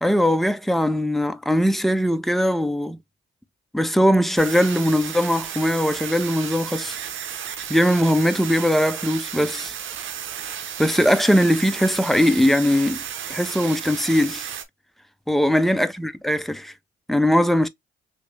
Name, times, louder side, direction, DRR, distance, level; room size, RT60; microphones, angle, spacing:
voice 1, 0.0-3.0 3.7-7.0 7.7-9.7 10.8-13.0 13.3-14.5 15.3-16.7 17.1-17.7, equal, ahead, 0.5 m, -20 dB
sound 1, 4.4-14.6, right 9 dB, 75° right, 0.8 m, -33 dB
3.2 x 3.1 x 3.2 m
cardioid pair, 90°, 20 cm